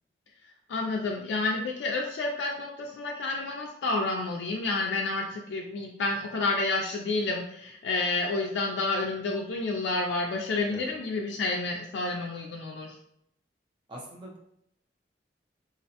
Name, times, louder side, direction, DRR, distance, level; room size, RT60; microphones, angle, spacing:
voice 1, 0.7-13.0, left 3 dB, 80° left, -1 dB, 0.3 m, -30 dB
voice 2, 13.9-14.4, right 1 dB, 25° right, -2 dB, 0.6 m, -43 dB
2.5 x 2.1 x 2.7 m, 0.74 s
head